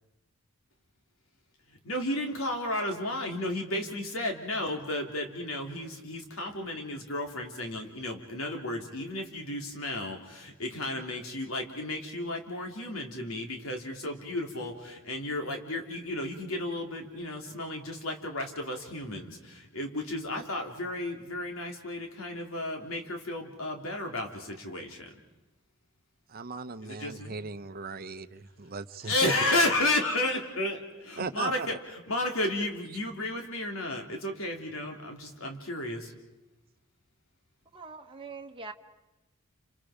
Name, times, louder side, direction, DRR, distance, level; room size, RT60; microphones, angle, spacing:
voice 1, 1.8-25.1 26.8-27.3 29.0-36.1, left 1 dB, 75° left, 3 dB, 3.4 m, -33 dB
voice 2, 26.3-29.3 31.2-31.8, right 4 dB, 45° right, 12 dB, 0.8 m, -37 dB
voice 3, 37.7-38.7, right 4 dB, 25° right, 3 dB, 1.1 m, -43 dB
29.5 x 27.5 x 5.1 m, 1.0 s
head